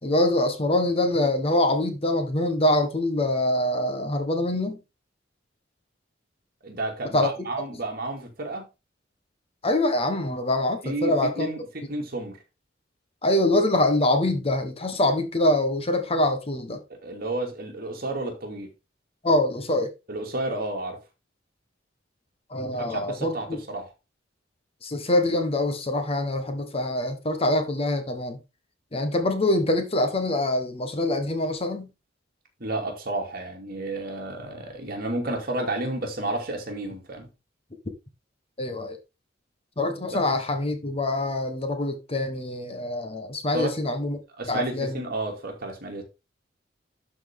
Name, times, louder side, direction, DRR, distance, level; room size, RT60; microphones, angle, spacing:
voice 1, 0.0-4.8 7.1-7.5 9.6-11.5 13.2-16.8 19.2-19.9 22.5-23.6 24.8-28.4 28.9-31.9 38.6-39.0 39.8-44.2 44.5-45.0, left 1 dB, 30° left, 1.2 m, -24 dB
voice 2, 6.6-8.7 10.8-12.4 16.9-18.7 20.1-21.0 22.9-23.9 32.6-37.3 43.5-43.8 44.4-46.0, right 2 dB, 55° right, 2.4 m, -31 dB
12.0 x 4.3 x 3.6 m
head